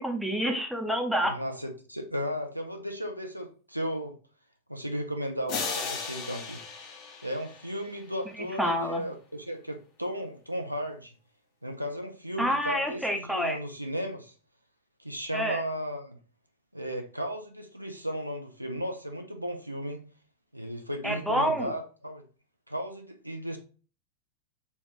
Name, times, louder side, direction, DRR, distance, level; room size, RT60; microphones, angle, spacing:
voice 1, 0.0-1.3 8.6-9.0 12.4-13.6 15.3-15.6 21.0-21.7, equal, ahead, 0.7 m, -28 dB
voice 2, 1.2-4.2 4.7-6.9 7.2-11.1 11.6-14.3 15.0-16.2 16.7-20.0 20.5-22.2 22.7-23.6, equal, 90° right, 0.5 m, -35 dB
sound 1, 5.5-8.2, left 5 dB, 40° left, 0.8 m, -36 dB
4.0 x 2.4 x 3.5 m
figure-of-eight pair, 90°, 0 cm